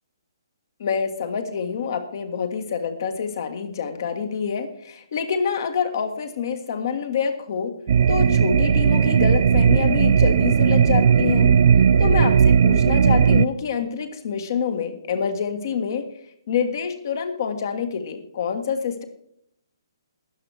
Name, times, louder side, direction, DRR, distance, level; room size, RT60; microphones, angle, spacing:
voice 1, 0.8-7.7 8.1-11.5 12.0-16.0 16.5-19.0, left 6 dB, 50° left, 7 dB, 1.6 m, -26 dB
sound 1, 7.9-13.5, right 7 dB, 50° right, 0.4 m, -17 dB
12.0 x 9.9 x 4.7 m, 0.71 s
figure-of-eight pair, 135°, 2 cm